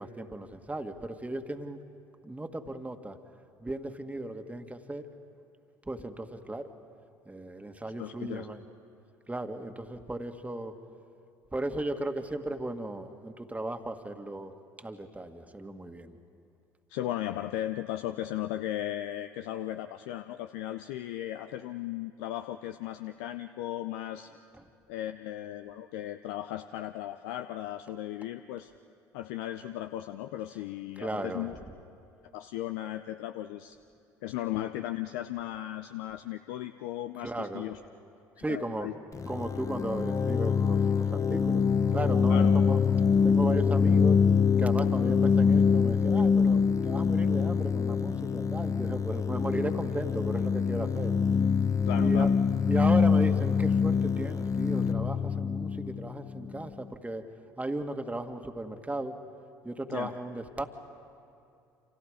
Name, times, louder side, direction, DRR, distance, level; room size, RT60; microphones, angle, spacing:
voice 1, 0.0-1.8 2.2-3.2 3.6-5.1 5.9-6.7 7.3-8.6 9.3-10.7 11.5-14.5 14.8-16.2 31.0-31.5 37.2-37.7 38.4-38.9 39.3-41.6 41.9-42.8 43.2-44.2 44.6-51.1 51.9-52.3 52.6-57.3 57.6-59.2 59.6-60.7, right 2 dB, 15° right, 6 dB, 1.9 m, -36 dB
voice 2, 8.0-8.5 16.9-24.3 24.9-28.7 29.1-31.6 32.3-33.8 34.2-37.8 38.5-38.9 42.3-42.5 51.9-52.4 59.9-60.2, left 13 dB, 70° left, 9 dB, 0.6 m, -36 dB
sound 1, 39.1-56.7, left 6 dB, 30° left, 1.1 m, -25 dB
30.0 x 27.0 x 5.1 m, 2.6 s
hypercardioid pair, 55°, 11 cm